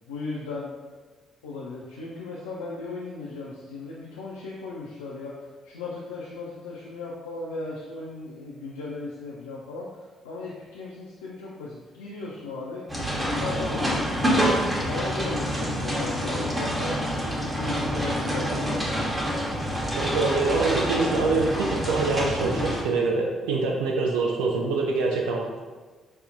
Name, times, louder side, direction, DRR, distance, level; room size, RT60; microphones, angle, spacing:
voice 1, 0.1-0.7 1.4-12.9 13.3-17.0 17.3-19.0, left 3 dB, 75° left, -5 dB, 0.3 m, -36 dB
sound 1, 12.9-22.8, equal, 20° right, 0.9 m, -27 dB
voice 2, 19.9-25.5, right 3 dB, 70° right, 0 dB, 0.3 m, -25 dB
5.2 x 2.0 x 2.5 m, 1.4 s
figure-of-eight pair, 40°, 0 cm